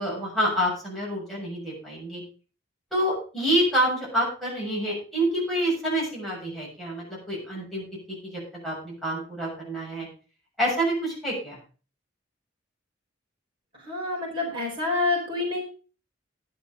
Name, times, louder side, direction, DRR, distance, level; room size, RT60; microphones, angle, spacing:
voice 1, 0.0-2.2 2.9-7.8 8.2-10.1 10.6-11.6, right 1 dB, ahead, -6 dB, 6.8 m, -27 dB
voice 2, 13.9-15.6, left 3 dB, 25° right, -4 dB, 4.1 m, -27 dB
11.5 x 8.6 x 5.0 m, 0.37 s
head